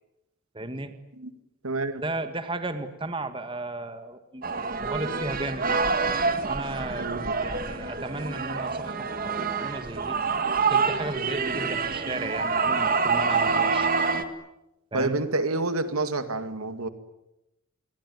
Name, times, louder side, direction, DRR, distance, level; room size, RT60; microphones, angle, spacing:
voice 1, 0.5-0.9 2.0-5.9 6.5-10.2 10.7-13.9 14.9-15.2, right 2 dB, 25° right, 9 dB, 1.8 m, -34 dB
voice 2, 1.6-2.0 7.0-7.3 14.9-16.9, right 2 dB, 80° right, 10 dB, 2.3 m, -28 dB
sound 1, 4.4-14.2, right 4 dB, 40° right, 1.9 m, -26 dB
28.0 x 22.0 x 9.6 m, 0.92 s
head